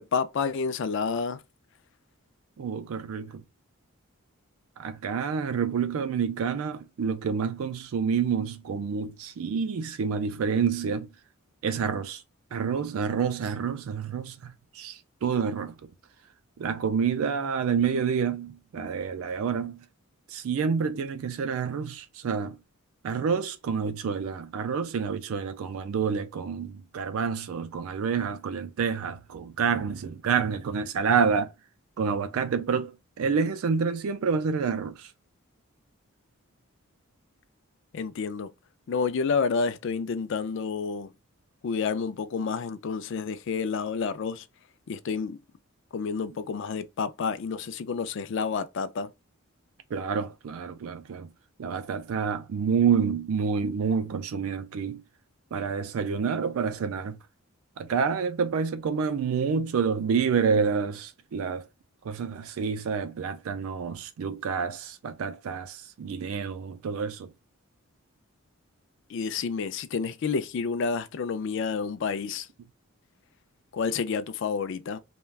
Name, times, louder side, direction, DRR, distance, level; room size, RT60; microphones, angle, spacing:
voice 1, 0.0-1.4 37.9-38.5 38.9-41.1 41.6-44.5 44.9-45.4 45.9-49.1 69.1-72.5 73.7-75.0, left 5 dB, 55° left, 0.3 m, -29 dB
voice 2, 2.6-3.4 4.8-11.1 11.6-12.2 12.5-15.8 16.6-19.8 20.3-22.6 23.0-31.5 32.0-35.1 49.9-51.3 51.6-55.0 55.5-57.2 57.8-61.7 62.0-67.3, right 6 dB, 70° right, 0.4 m, -28 dB
3.2 x 2.2 x 2.3 m
head